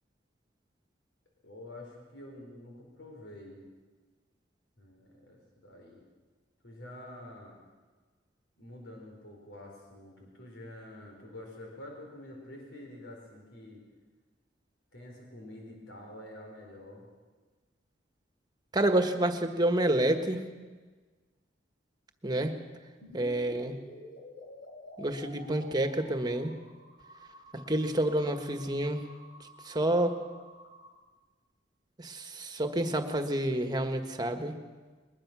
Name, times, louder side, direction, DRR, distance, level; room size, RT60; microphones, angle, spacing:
voice 1, 1.4-3.6 4.8-6.0 6.6-7.6 8.6-13.8 14.9-17.1, left 1 dB, 90° left, 0 dB, 4.6 m, -47 dB
voice 2, 18.7-20.4 22.2-22.5 23.1-23.7 25.0-26.5 27.7-29.0 29.7-30.2 32.0-34.5, right 1 dB, 25° right, 6 dB, 1.5 m, -28 dB
sound 1, 23.0-30.9, left 1 dB, 60° left, 3.6 m, -51 dB
21.0 x 21.0 x 6.2 m, 1.3 s
head